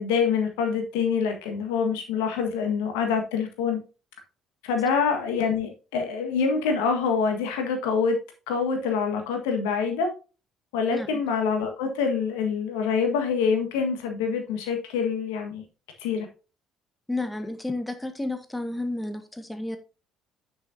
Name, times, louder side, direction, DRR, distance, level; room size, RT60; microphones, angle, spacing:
voice 1, 0.0-3.8 4.6-8.2 8.5-10.1 10.7-15.6 16.0-16.3, left 5 dB, 75° left, 4 dB, 1.6 m, -25 dB
voice 2, 10.9-11.2 17.1-19.8, left 2 dB, 10° left, 7 dB, 1.6 m, -31 dB
9.8 x 6.3 x 2.7 m, 0.32 s
hypercardioid pair, 50°, 0 cm